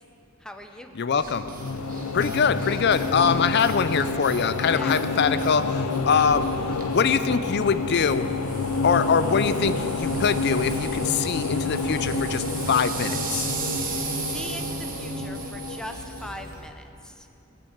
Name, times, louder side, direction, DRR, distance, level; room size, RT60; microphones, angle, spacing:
voice 1, 0.4-1.0 4.7-5.0 6.1-6.3 14.0-17.3, left 1 dB, 5° left, 5 dB, 0.7 m, -40 dB
voice 2, 0.9-1.4 2.1-8.3 8.8-13.5, left 6 dB, 50° left, 12 dB, 0.5 m, -23 dB
sound 1, 1.1-16.7, right 5 dB, 40° right, 1.2 m, -38 dB
sound 2, 1.2-16.6, left 3 dB, 85° left, 0.8 m, -29 dB
sound 3, 9.4-15.4, right 3 dB, 55° right, 0.5 m, -37 dB
16.0 x 6.8 x 7.9 m, 2.8 s
head